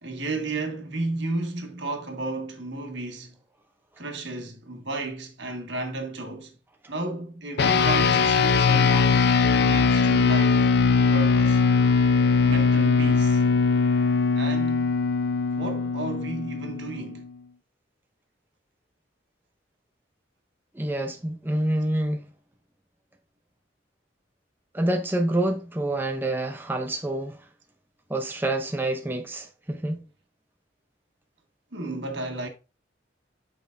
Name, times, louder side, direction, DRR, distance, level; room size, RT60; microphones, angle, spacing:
voice 1, 0.0-3.3 4.0-6.6 6.9-9.4 9.6-11.6 12.4-13.4 14.4-15.0 15.6-17.3 31.7-32.5, right 2 dB, 75° right, 1.5 m, -33 dB
sound 1, 7.6-17.2, left 5 dB, 60° left, 0.6 m, -21 dB
voice 2, 20.7-22.3 24.7-27.5 28.1-30.0, right 1 dB, 10° right, 0.6 m, -27 dB
8.7 x 5.2 x 2.5 m
head